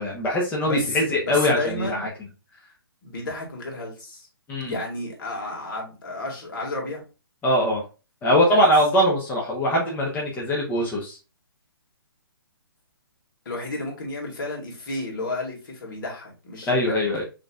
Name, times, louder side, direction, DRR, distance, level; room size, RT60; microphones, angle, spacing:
voice 1, 0.0-2.1 4.5-4.7 7.4-7.8 8.2-11.2 16.7-17.2, equal, 15° left, -3 dB, 1.0 m, -22 dB
voice 2, 0.6-2.0 3.0-4.3 4.7-7.0 8.5-8.6 13.5-16.9, left 2 dB, 55° left, -1 dB, 2.2 m, -32 dB
6.2 x 3.0 x 2.4 m, 0.31 s
figure-of-eight pair, 140°, 13 cm